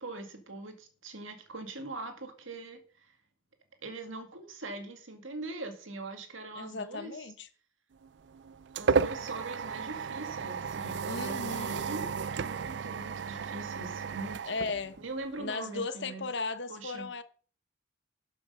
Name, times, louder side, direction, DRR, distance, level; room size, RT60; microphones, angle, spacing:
voice 1, 0.0-3.2 3.8-7.2 8.7-12.0 12.3-14.4 15.0-16.3 16.7-17.1, right 2 dB, 80° right, 2.2 m, -42 dB
voice 2, 6.6-7.5 11.1-11.9 14.5-15.0 15.4-17.2, left 3 dB, 60° left, 0.9 m, -36 dB
sound 1, 8.0-15.4, right 5 dB, 60° right, 0.4 m, -33 dB
12.0 x 6.6 x 5.5 m
head